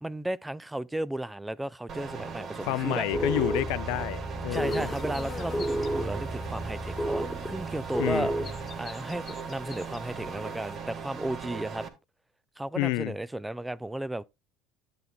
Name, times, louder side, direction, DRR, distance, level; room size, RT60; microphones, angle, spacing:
voice 1, 0.0-3.1 4.5-8.3 8.8-11.9 12.6-14.2, right 1 dB, 10° right, 0.4 m, -34 dB
sound 1, 1.9-11.9, right 6 dB, 45° right, 1.4 m, -39 dB
voice 2, 2.6-4.9 8.0-8.3 12.8-13.1, left 20 dB, 70° left, 0.4 m, -29 dB
sound 2, 3.1-8.8, right 1 dB, 5° left, 1.1 m, -32 dB
sound 3, 4.5-10.8, left 6 dB, 30° left, 0.8 m, -46 dB
12.0 x 7.9 x 2.2 m
hypercardioid pair, 75°, 0 cm